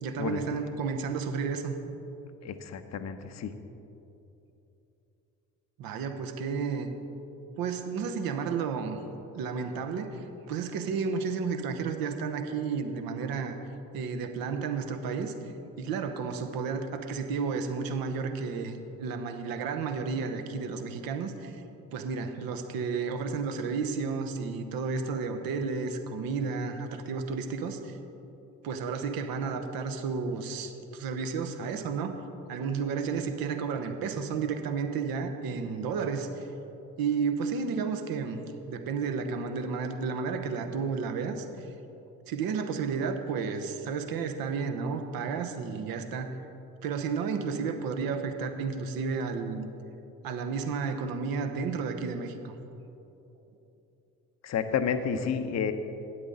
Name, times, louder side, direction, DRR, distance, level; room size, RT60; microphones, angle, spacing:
voice 1, 0.0-1.7 5.8-6.9 7.6-9.0 9.3-13.6 13.9-15.3 15.8-21.6 21.9-28.0 28.6-32.2 32.5-36.5 37.0-41.7 42.3-46.4 46.8-49.7 50.2-52.5, right 5 dB, 55° right, 7 dB, 1.0 m, -32 dB
voice 2, 2.4-3.5 54.4-55.7, left 7 dB, 40° left, 9 dB, 0.8 m, -30 dB
12.0 x 9.4 x 3.9 m, 2.9 s
figure-of-eight pair, 45°, 43 cm